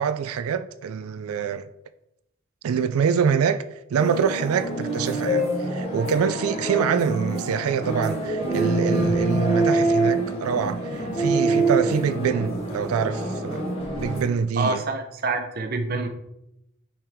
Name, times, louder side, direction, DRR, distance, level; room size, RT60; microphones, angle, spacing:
voice 1, 0.0-1.7 2.6-3.6 3.9-13.7 14.0-14.8, right 7 dB, 90° right, 0.4 m, -25 dB
sound 1, 4.0-14.2, right 2 dB, 30° left, 1.5 m, -25 dB
voice 2, 14.6-16.1, right 3 dB, 45° right, 0.7 m, -26 dB
5.8 x 4.9 x 3.6 m
head